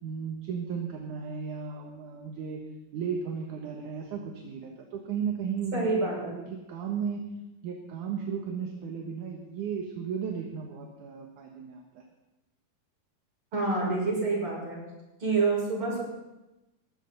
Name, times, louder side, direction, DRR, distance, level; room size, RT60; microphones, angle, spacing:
voice 1, 0.0-2.6 2.9-7.3 7.6-12.0, right 6 dB, 70° right, 1 dB, 2.8 m, -35 dB
voice 2, 5.7-6.4 13.5-14.8 15.2-16.0, right 3 dB, 35° right, -4 dB, 7.2 m, -27 dB
19.5 x 15.5 x 4.1 m, 0.99 s
omnidirectional pair, 3.8 m